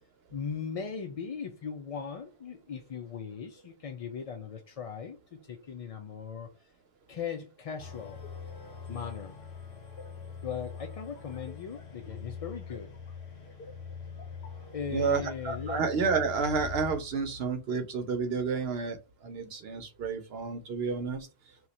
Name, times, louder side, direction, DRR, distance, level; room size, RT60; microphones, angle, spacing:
voice 1, 0.3-6.5 7.1-8.2 8.9-9.4 10.4-12.9 14.7-15.8, left 6 dB, 55° left, 0.4 m, -38 dB
sound 1, 7.8-17.0, left 6 dB, 75° left, 1.0 m, -43 dB
voice 2, 14.9-19.0 19.2-21.2, right 5 dB, 75° right, 0.9 m, -30 dB
2.9 x 2.3 x 3.9 m
omnidirectional pair, 1.1 m